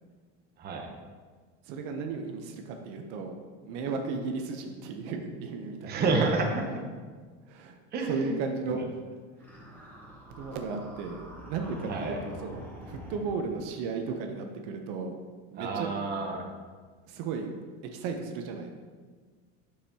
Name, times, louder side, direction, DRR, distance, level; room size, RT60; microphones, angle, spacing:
voice 1, 0.6-0.9 5.9-6.6 7.9-8.3 8.7-8.8 11.9-12.2 15.6-16.5, right 3 dB, 30° right, 1 dB, 0.9 m, -29 dB
voice 2, 1.6-6.0 6.7-6.8 7.5-7.8 8.1-9.0 9.4-9.5 10.4-15.1 15.5-15.9 17.1-17.5 17.9-18.7, right 4 dB, 65° right, 4 dB, 0.9 m, -35 dB
sound 1, 9.4-13.7, equal, 5° left, 1.8 m, -46 dB
8.3 x 6.6 x 2.9 m, 1.5 s
cardioid pair, 155°, 35 cm